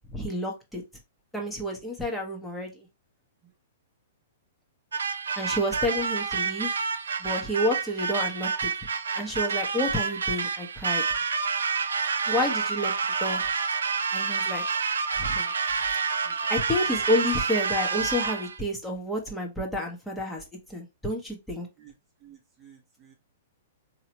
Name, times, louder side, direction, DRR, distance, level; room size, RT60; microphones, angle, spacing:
voice 1, 0.1-0.8 1.3-2.9 5.4-6.7 7.2-8.7 9.1-11.0 12.3-12.9 13.2-13.4 14.1-14.6 15.1-15.5 16.5-20.4 20.7-21.7, left 1 dB, 5° left, 1.1 m, -29 dB
sound 1, 4.9-18.6, right 5 dB, 70° right, 0.4 m, -28 dB
voice 2, 22.2-23.1, right 9 dB, 20° right, 1.0 m, -54 dB
3.9 x 2.9 x 3.0 m
figure-of-eight pair, 110°, 0 cm